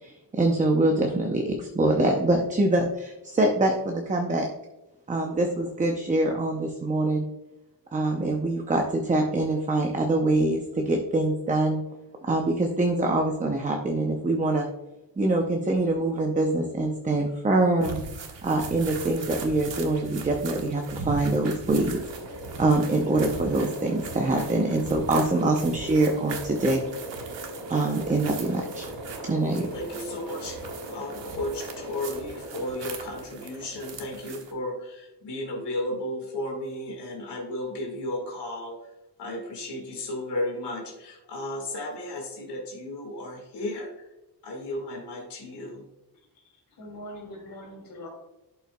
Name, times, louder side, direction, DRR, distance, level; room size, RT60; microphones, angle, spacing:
voice 1, 0.0-4.5 5.1-7.3 7.9-11.8 12.2-14.7 15.2-18.0 18.4-22.0 22.6-26.8 27.1-27.3 27.7-28.8 29.2-29.7, right 2 dB, 20° right, 2 dB, 0.5 m, -24 dB
sound 1, 17.8-34.5, right 4 dB, 85° right, 1.3 m, -40 dB
sound 2, 21.9-34.5, right 1 dB, 45° right, 2.4 m, -39 dB
voice 2, 29.7-38.9 39.2-44.1 44.4-45.9, left 1 dB, 70° left, 0 dB, 1.8 m, -34 dB
voice 3, 46.8-48.1, left 1 dB, 50° left, 0 dB, 2.6 m, -41 dB
11.5 x 5.6 x 2.2 m, 0.99 s
wide cardioid pair, 180°, 43 cm